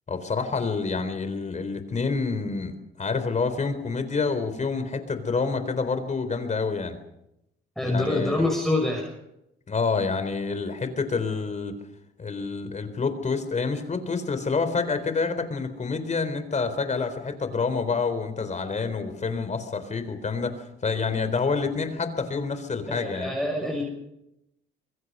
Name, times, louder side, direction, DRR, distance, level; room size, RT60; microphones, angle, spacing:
voice 1, 0.1-7.0 7.8-8.4 9.7-11.7 12.2-23.3, left 4 dB, 35° left, 10 dB, 3.9 m, -28 dB
voice 2, 7.8-9.1 22.9-23.8, left 2 dB, ahead, 0 dB, 6.3 m, -26 dB
26.5 x 21.5 x 5.5 m, 0.85 s
cardioid pair, 90°, 20 cm